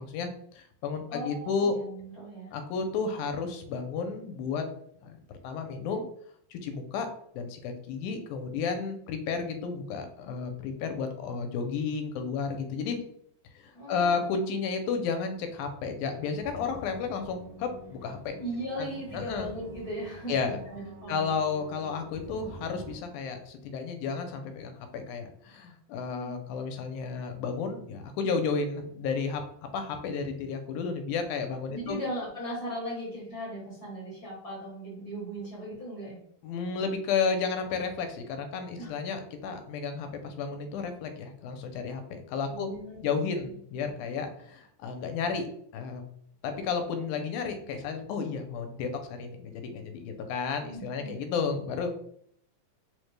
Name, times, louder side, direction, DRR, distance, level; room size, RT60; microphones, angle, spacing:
voice 1, 0.0-1.8 2.5-4.7 5.0-5.2 5.4-6.1 6.5-7.1 7.4-13.0 13.6-18.4 18.8-19.5 20.3-20.6 21.1-29.4 29.7-32.0 36.4-42.7 43.0-45.5 45.7-46.0 46.4-52.0, left 5 dB, 90° left, 6 dB, 2.1 m, -32 dB
voice 2, 1.1-2.5 13.7-14.2 18.4-21.3 26.1-26.4 31.7-36.2 38.8-38.9 42.4-43.5 50.6-51.1, right 1 dB, 55° left, -7 dB, 0.9 m, -38 dB
sound 1, 16.4-23.0, right 1 dB, 80° right, 1.1 m, -46 dB
4.8 x 2.1 x 3.1 m, 0.67 s
omnidirectional pair, 3.5 m